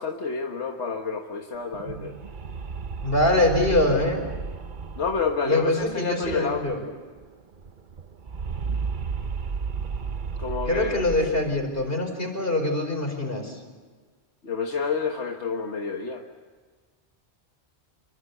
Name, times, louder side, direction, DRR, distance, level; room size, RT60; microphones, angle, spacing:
voice 1, 0.0-2.2 5.0-6.6 10.4-11.0 14.4-16.2, left 5 dB, 85° left, 2 dB, 1.8 m, -29 dB
sound 1, 1.6-6.9 7.2-7.3 7.5-11.9, right 5 dB, 50° right, 1.0 m, -34 dB
voice 2, 3.0-4.2 5.4-6.8 10.7-13.6, left 1 dB, 55° left, 4 dB, 5.2 m, -24 dB
27.0 x 23.5 x 8.3 m, 1.5 s
omnidirectional pair, 1.1 m